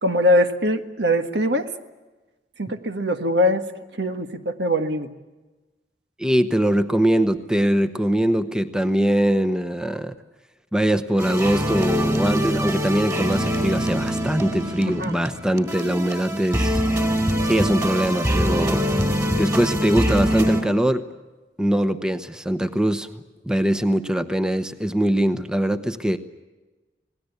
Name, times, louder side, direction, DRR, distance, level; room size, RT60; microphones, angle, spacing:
voice 1, 0.0-1.7 2.6-3.6 4.0-5.1 14.9-15.1, equal, 75° right, 7 dB, 1.6 m, -22 dB
voice 2, 6.2-10.1 10.7-16.8 17.4-18.8 19.4-21.0 21.6-23.2 23.4-26.2, right 1 dB, 5° right, 9 dB, 0.9 m, -22 dB
sound 1, 11.2-20.6, equal, 20° right, 3.6 m, -24 dB
27.0 x 19.5 x 8.3 m, 1.2 s
head